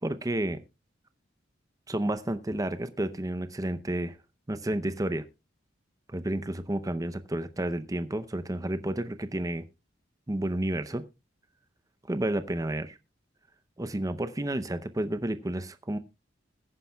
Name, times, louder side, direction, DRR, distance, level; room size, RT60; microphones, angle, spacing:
voice 1, 0.0-0.6 1.9-4.2 4.5-5.3 6.1-9.7 10.3-11.0 12.1-13.0 13.8-16.0, right 1 dB, 20° right, 12 dB, 0.6 m, -31 dB
21.0 x 9.8 x 2.2 m, 0.26 s
head